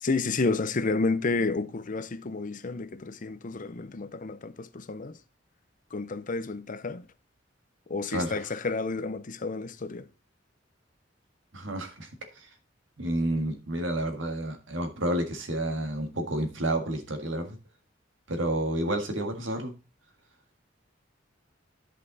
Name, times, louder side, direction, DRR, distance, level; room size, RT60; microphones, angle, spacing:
voice 1, 0.0-5.2 5.9-7.1 7.9-10.1, left 3 dB, 45° left, 0.6 m, -30 dB
voice 2, 8.1-8.4 11.5-12.5 13.0-17.6 18.3-19.7, right 1 dB, 90° right, 1.7 m, -30 dB
10.5 x 5.5 x 4.0 m
head